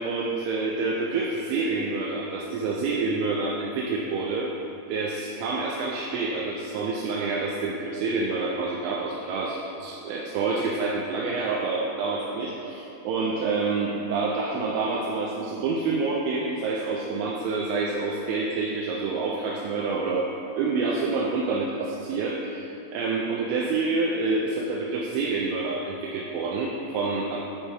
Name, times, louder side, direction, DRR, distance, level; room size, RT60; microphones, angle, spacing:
voice 1, 0.0-4.5 4.9-20.3 20.6-27.4, right 3 dB, 85° right, -2 dB, 2.7 m, -27 dB
9.5 x 4.4 x 3.3 m, 2.9 s
omnidirectional pair, 5.9 m